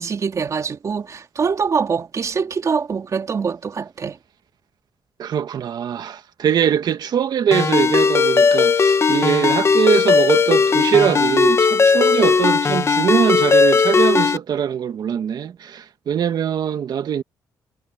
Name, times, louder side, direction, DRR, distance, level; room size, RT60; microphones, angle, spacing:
voice 1, 0.0-4.2, right 5 dB, 45° right, 3.5 m, -24 dB
voice 2, 5.2-17.2, right 8 dB, 65° right, 2.0 m, -21 dB
Ringtone, 7.5-14.4, left 5 dB, 35° left, 0.9 m, -17 dB
cardioid pair, 105°, 8 cm